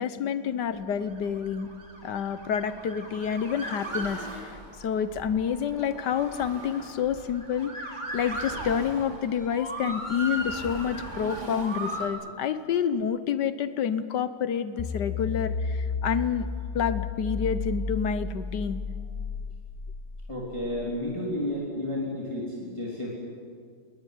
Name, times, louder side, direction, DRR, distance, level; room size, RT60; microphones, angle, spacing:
voice 1, 0.0-1.7 2.0-7.7 8.1-16.5 16.7-18.8, left 8 dB, 65° left, 13 dB, 1.4 m, -28 dB
Motor vehicle (road) / Siren, 1.0-12.1, right 1 dB, 20° right, 3.1 m, -37 dB
sound 1, 14.8-21.0, left 4 dB, 45° left, 0.5 m, -33 dB
voice 2, 20.3-23.1, left 1 dB, 15° left, -4 dB, 3.4 m, -31 dB
20.5 x 18.5 x 9.9 m, 2.1 s
omnidirectional pair, 2.2 m